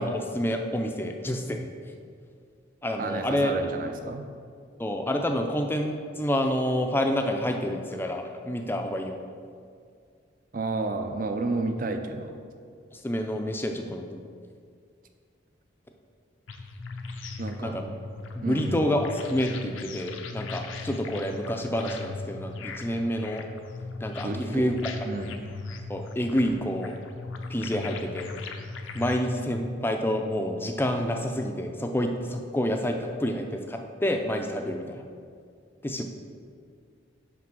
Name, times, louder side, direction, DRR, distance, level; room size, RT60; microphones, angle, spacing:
voice 1, 0.0-1.7 2.8-3.5 4.8-9.2 12.9-14.2 17.6-17.9 18.4-23.4 24.0-24.9 25.9-26.9 27.5-28.3 28.9-35.0 35.8-36.0, equal, 10° left, 4 dB, 0.4 m, -28 dB
voice 2, 3.0-4.3 10.5-12.4 17.4-17.8 18.4-18.8 24.2-24.8 25.1-25.3, right 3 dB, 45° right, 7 dB, 0.5 m, -31 dB
sound 1, 16.5-29.3, left 3 dB, 80° left, 0.6 m, -38 dB
6.0 x 5.0 x 6.1 m, 2.2 s
head